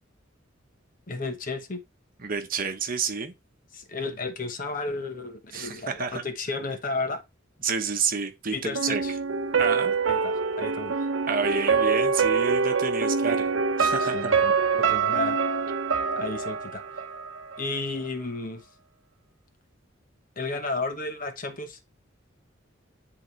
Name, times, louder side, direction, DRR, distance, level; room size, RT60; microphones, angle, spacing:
voice 1, 1.1-1.8 3.7-7.2 8.5-9.1 10.1-11.1 14.0-15.4 16.1-16.8 17.6-18.7 20.4-21.8, left 3 dB, 45° left, 1.0 m, -33 dB
voice 2, 2.2-3.3 5.5-6.2 7.6-9.0 9.6-10.0 11.3-13.5 13.8-14.3, right 5 dB, 45° right, 1.1 m, -29 dB
sound 1, 8.8-17.7 18.1-18.2, right 5 dB, 85° right, 0.7 m, -25 dB
10.5 x 3.8 x 3.2 m
head